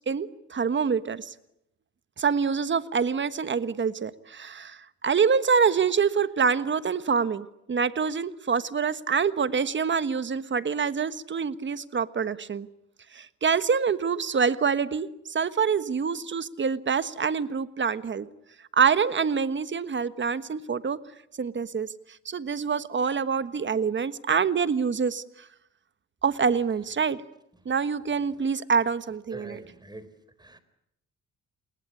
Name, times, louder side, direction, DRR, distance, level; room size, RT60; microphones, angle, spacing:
voice 1, 0.1-1.3 2.2-12.7 13.1-18.3 18.7-21.0 21.4-21.9 22.2-25.2 26.2-27.2 27.6-29.6, right 6 dB, 40° right, 14 dB, 1.4 m, -26 dB
voice 2, 29.3-30.1 30.4-30.6, right 2 dB, 15° right, 13 dB, 4.2 m, -44 dB
29.5 x 21.0 x 9.6 m, 0.82 s
cardioid pair, 90°, 30 cm